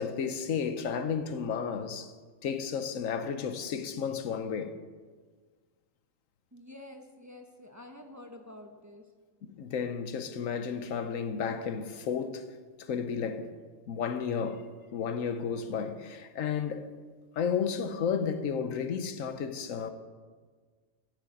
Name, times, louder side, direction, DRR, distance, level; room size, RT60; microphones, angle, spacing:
voice 1, 0.0-2.1 2.4-4.7 9.6-12.5 12.8-13.5 13.9-16.9 17.4-19.9, left 6 dB, 85° left, 1.2 m, -32 dB
voice 2, 6.5-9.0, left 1 dB, 15° right, 1.0 m, -48 dB
13.5 x 6.6 x 7.8 m
omnidirectional pair, 1.3 m